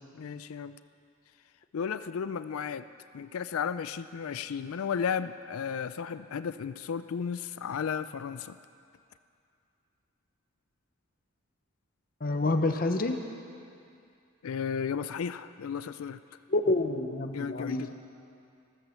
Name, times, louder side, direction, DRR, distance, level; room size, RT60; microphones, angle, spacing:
voice 1, 0.1-0.8 1.7-2.9 3.1-8.6 14.4-16.2 17.3-17.9, left 7 dB, 90° left, 13 dB, 0.4 m, -34 dB
voice 2, 12.2-13.2 16.5-17.9, left 2 dB, 45° left, 6 dB, 0.8 m, -28 dB
14.0 x 14.0 x 7.0 m, 2.5 s
head